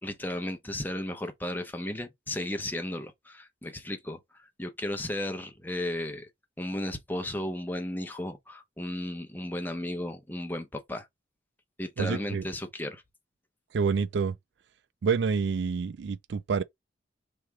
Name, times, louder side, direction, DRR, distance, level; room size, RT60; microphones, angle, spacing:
voice 1, 0.0-6.3 6.6-11.1 11.8-13.0, left 1 dB, 10° left, 0.8 m, -34 dB
voice 2, 12.0-12.4 13.7-14.3 15.0-16.6, right 5 dB, 65° right, 0.4 m, -27 dB
3.5 x 3.2 x 4.7 m
head